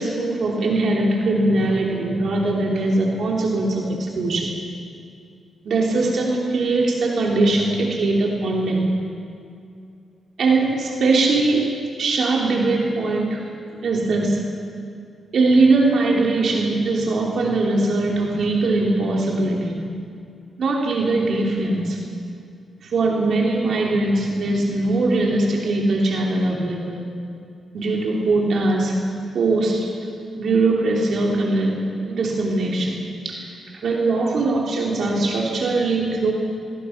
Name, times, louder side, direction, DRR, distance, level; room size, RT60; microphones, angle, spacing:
voice 1, 0.0-4.5 5.7-8.8 10.4-11.7 12.0-13.4 13.8-14.4 15.3-19.8 20.6-22.0 22.8-27.0 27.7-29.0 29.3-29.9 30.3-33.0 33.2-33.4 33.8-36.3, right 2 dB, 70° right, -1 dB, 3.4 m, -21 dB
23.0 x 21.5 x 6.0 m, 2.4 s
cardioid pair, 85°, 0 cm